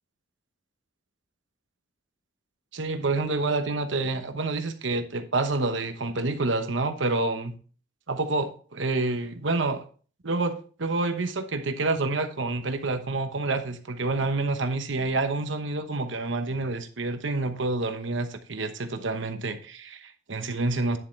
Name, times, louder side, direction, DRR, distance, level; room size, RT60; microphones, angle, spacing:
voice 1, 2.7-7.5 8.1-9.8 10.2-21.0, right 3 dB, 70° right, 1.0 m, -28 dB
10.0 x 7.5 x 3.2 m
head